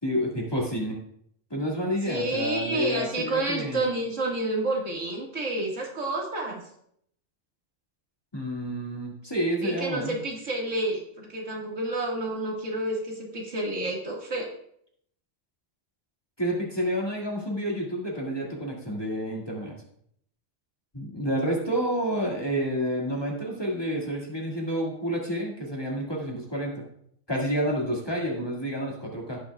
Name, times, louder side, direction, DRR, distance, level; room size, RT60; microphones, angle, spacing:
voice 1, 0.0-1.0 1.5-3.8 8.3-10.2 16.4-19.8 20.9-26.8 27.3-29.4, equal, 20° left, -3 dB, 2.0 m, -29 dB
voice 2, 2.1-6.6 9.6-14.5, right 2 dB, 75° right, -2 dB, 2.2 m, -29 dB
17.0 x 6.0 x 2.3 m, 0.69 s
omnidirectional pair, 1.3 m